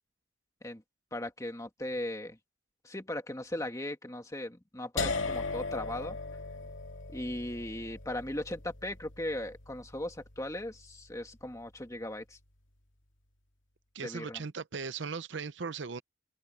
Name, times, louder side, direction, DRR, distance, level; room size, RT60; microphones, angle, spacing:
voice 1, 1.1-2.4 2.8-6.2 7.1-12.4 14.0-14.4, left 1 dB, 15° left, 2.0 m, -38 dB
sound 1, 5.0-10.9, left 3 dB, 70° left, 2.7 m, -38 dB
voice 2, 13.9-16.0, right 5 dB, 60° right, 0.7 m, -38 dB
head